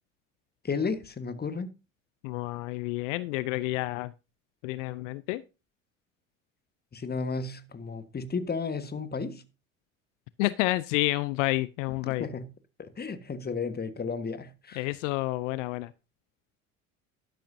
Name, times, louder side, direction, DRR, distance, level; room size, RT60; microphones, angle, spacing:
voice 1, 0.6-1.7 6.9-9.4 12.0-12.5 12.8-14.8, left 4 dB, 25° left, 1.5 m, -33 dB
voice 2, 2.2-4.1 4.6-5.4 10.4-12.3 14.8-15.9, left 19 dB, 70° left, 0.6 m, -29 dB
12.0 x 11.5 x 2.7 m
hypercardioid pair, 65°, 39 cm